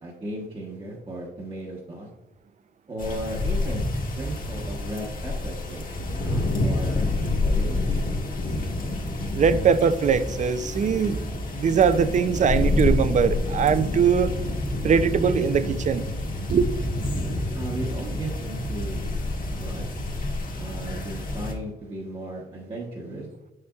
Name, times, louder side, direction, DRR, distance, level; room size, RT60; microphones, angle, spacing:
voice 1, 0.0-2.1 2.9-5.8 6.1-7.1 7.4-8.0 17.5-19.2 19.6-19.8 20.6-23.3, right 1 dB, 30° right, -3 dB, 1.0 m, -36 dB
sound 1, 3.0-21.5, left 2 dB, 50° left, 1.5 m, -28 dB
voice 2, 9.3-11.2 11.5-14.3 14.8-16.0 16.5-16.7, right 7 dB, 45° right, 14 dB, 0.4 m, -21 dB
6.8 x 6.6 x 2.3 m, 1.0 s
cardioid pair, 115°, 18 cm